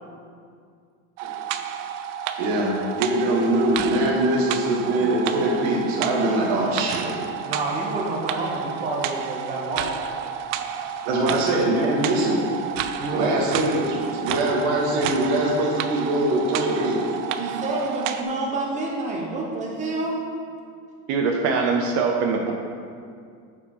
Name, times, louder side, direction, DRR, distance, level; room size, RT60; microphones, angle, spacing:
sound 1, 1.2-18.2, right 9 dB, 85° right, 0.6 m, -31 dB
voice 1, 2.4-7.1 11.1-12.4 13.1-17.0, right 1 dB, 65° right, -3 dB, 1.9 m, -22 dB
voice 2, 7.4-9.9 10.2-10.3 13.0-13.6 17.4-20.1, right 2 dB, 20° right, -2 dB, 0.9 m, -28 dB
voice 3, 21.1-22.5, right 4 dB, 40° right, 2 dB, 0.4 m, -22 dB
8.2 x 4.9 x 4.7 m, 2.2 s
cardioid pair, 180°, 37 cm